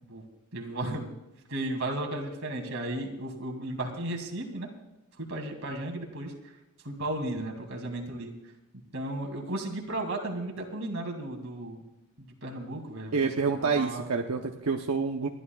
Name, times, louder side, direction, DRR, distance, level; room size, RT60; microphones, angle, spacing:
voice 1, 0.5-1.1 1.5-4.7 5.2-6.3 6.8-8.3 8.9-11.8 12.4-13.1 13.6-14.1, right 1 dB, 60° right, 2 dB, 2.5 m, -34 dB
voice 2, 13.1-15.3, right 5 dB, 90° right, 3 dB, 0.8 m, -28 dB
30.0 x 11.5 x 2.4 m, 0.97 s
head